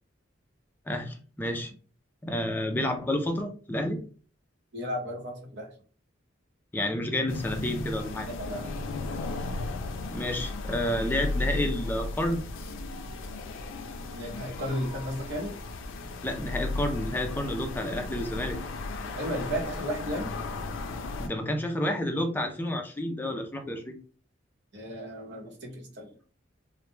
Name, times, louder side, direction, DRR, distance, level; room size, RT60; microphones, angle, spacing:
voice 1, 0.9-1.7 2.2-4.0 6.7-8.3 10.1-12.4 16.2-18.6 21.2-24.0, left 1 dB, 10° left, 4 dB, 0.4 m, -30 dB
voice 2, 4.7-5.7 8.3-8.8 14.2-15.5 19.2-20.3 24.7-26.1, equal, 65° right, -1 dB, 0.8 m, -34 dB
sound 1, 7.3-21.3, left 2 dB, 85° left, 0.4 m, -35 dB
2.2 x 2.1 x 3.0 m, 0.41 s
head